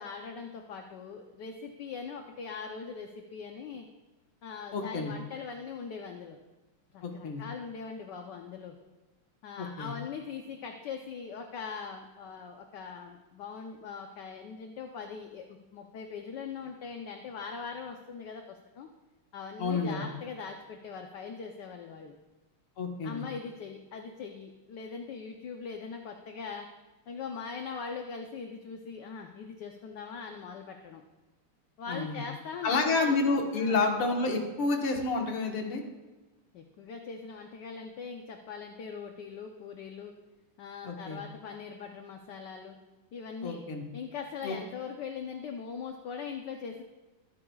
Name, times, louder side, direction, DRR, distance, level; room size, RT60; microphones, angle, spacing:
voice 1, 0.0-3.9 4.4-6.4 6.9-8.7 9.4-18.9 19.3-22.1 23.0-26.7 27.1-31.0 31.8-33.2 33.5-33.8 36.5-40.1 40.6-42.8 43.1-43.6 43.9-46.8, left 5 dB, 65° left, 3 dB, 1.2 m, -41 dB
voice 2, 4.7-5.1 7.0-7.4 9.6-9.9 19.6-20.0 22.8-23.2 31.9-32.2 32.6-35.8 40.8-41.2 43.4-43.8 44.4-44.6, left 3 dB, 80° left, 2 dB, 2.4 m, -29 dB
22.5 x 9.8 x 2.4 m, 1.2 s
omnidirectional pair, 2.4 m